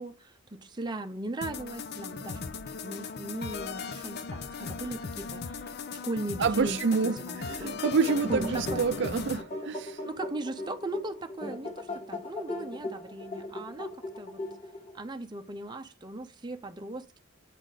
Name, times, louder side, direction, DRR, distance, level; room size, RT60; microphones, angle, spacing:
voice 1, 0.0-6.8 7.0-7.4 8.2-8.8 10.0-14.4 14.9-17.2, right 2 dB, 20° right, 0.7 m, -38 dB
sound 1, 1.4-9.4, left 5 dB, 55° left, 0.6 m, -38 dB
voice 2, 6.4-7.2 7.5-10.0, right 5 dB, 60° right, 0.5 m, -27 dB
sound 2, 7.3-10.0, left 2 dB, 90° left, 0.7 m, -46 dB
sound 3, 7.4-15.0, left 1 dB, 35° left, 1.8 m, -39 dB
9.1 x 4.1 x 4.9 m
head